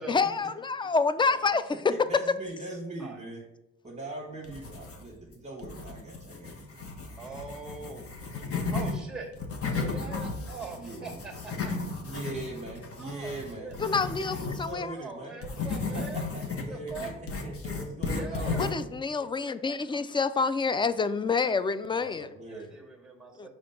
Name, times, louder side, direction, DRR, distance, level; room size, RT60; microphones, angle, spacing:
voice 1, 0.1-1.8 13.8-14.9 18.6-22.3 23.4-23.5, left 4 dB, 15° left, 14 dB, 0.3 m, -28 dB
voice 2, 1.9-3.4 3.8-7.4 9.7-10.2 10.8-11.3 12.0-15.3 15.9-17.1 17.4-18.7 19.2-19.3 21.9-22.7, right 2 dB, 25° right, -1 dB, 1.3 m, -41 dB
sound 1, 4.4-5.3 5.6-9.0 9.3-14.7 15.4-18.9, left 4 dB, 50° left, 1.2 m, -34 dB
voice 3, 7.2-8.1 8.7-9.3 9.7-11.7 13.0-13.8 14.9-16.2 16.7-17.1 18.1-18.8 22.5-23.5, right 4 dB, ahead, 2 dB, 1.8 m, -42 dB
5.1 x 3.9 x 5.6 m, 0.93 s
cardioid pair, 90°, 30 cm